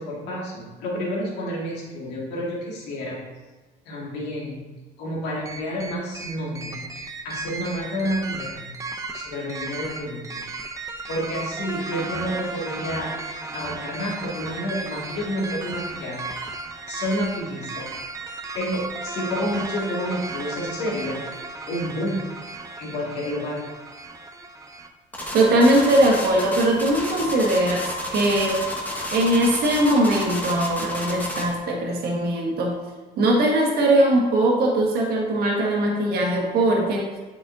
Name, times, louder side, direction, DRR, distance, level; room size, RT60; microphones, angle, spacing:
voice 1, 0.0-3.2 3.9-4.7 5.0-8.7 9.1-10.5 11.1-13.1 13.5-16.3 16.9-17.9 18.5-21.3 21.7-22.2 22.8-23.6, equal, 85° left, -4 dB, 2.2 m, -29 dB
sound 1, 5.5-24.9, right 3 dB, 20° right, 0.6 m, -35 dB
sound 2, 25.1-31.6, left 1 dB, 10° left, 1.4 m, -30 dB
voice 2, 25.3-28.6 29.1-32.8 33.2-37.1, right 1 dB, 65° right, -1 dB, 1.6 m, -20 dB
8.0 x 5.6 x 2.7 m, 1.3 s
cardioid pair, 110°, 17 cm